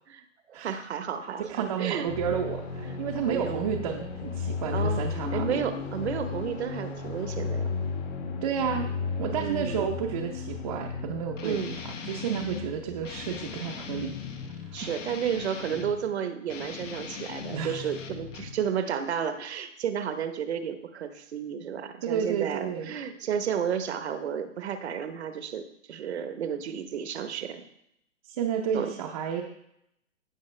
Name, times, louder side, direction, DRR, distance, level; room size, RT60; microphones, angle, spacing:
voice 1, 0.1-2.1 2.8-3.0 3.3-3.7 4.7-5.0 5.3-7.7 9.4-9.9 11.4-11.8 14.7-27.6 28.7-28.9, right 8 dB, 55° right, 9 dB, 1.0 m, -32 dB
voice 2, 1.5-5.6 8.4-8.9 9.2-11.7 12.0-14.1 17.5-17.8 22.0-22.9 28.2-29.4, right 8 dB, 30° right, 1 dB, 0.7 m, -31 dB
sound 1, 2.1-14.5, left 5 dB, 55° left, 1.8 m, -34 dB
Guitar, 11.3-12.7 13.0-16.0 16.4-18.6, left 6 dB, 70° left, 1.5 m, -39 dB
16.0 x 5.7 x 3.2 m, 0.76 s
hypercardioid pair, 155°, 39 cm